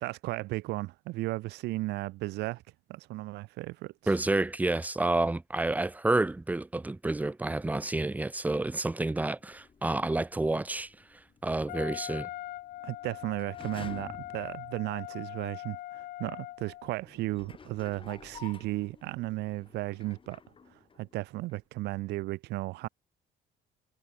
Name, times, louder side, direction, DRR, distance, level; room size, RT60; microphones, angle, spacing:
voice 1, 0.0-2.6 2.9-3.9 12.8-20.4 20.7-22.9, right 19 dB, 80° right, 0.6 m, -35 dB
voice 2, 4.1-10.9 11.4-12.3, right 2 dB, 10° right, 0.7 m, -29 dB
sound 1, 9.4-15.4 16.0-16.1 16.9-21.2 21.5-21.6, left 6 dB, 30° left, 2.2 m, -52 dB
Wind instrument woodwind instrument, 11.7-16.9, left 15 dB, 60° left, 0.5 m, -41 dB
cardioid pair, 110°, 17 cm